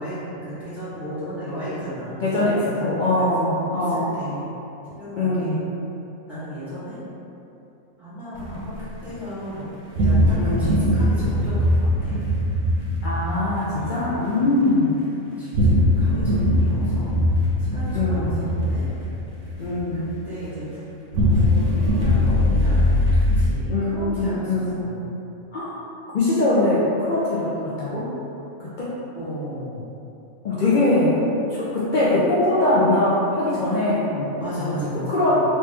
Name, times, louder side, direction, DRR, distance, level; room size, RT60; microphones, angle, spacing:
voice 1, 0.0-4.5 4.8-5.6 6.3-7.0 8.0-8.7 9.0-9.7 10.0-12.3 13.7-14.5 15.4-17.1 17.6-18.8 19.9-20.9 21.3-25.0 29.1-29.8 30.6-30.8 34.4-35.4, equal, ahead, -15 dB, 1.3 m, -34 dB
voice 2, 2.2-4.1 5.2-5.6 10.4-10.8 13.0-15.0 17.9-18.4 19.6-20.1 23.7-24.8 25.5-25.7 26.1-28.1 28.6-28.9 30.4-31.2 31.5-34.7 35.1-35.4, left 2 dB, 75° left, -8 dB, 0.4 m, -22 dB
sound 1, 8.3-9.0 10.0-14.2 15.5-20.1 21.1-23.5, left 1 dB, 75° right, 1.1 m, -21 dB
3.1 x 2.9 x 3.3 m, 2.9 s
omnidirectional pair, 1.4 m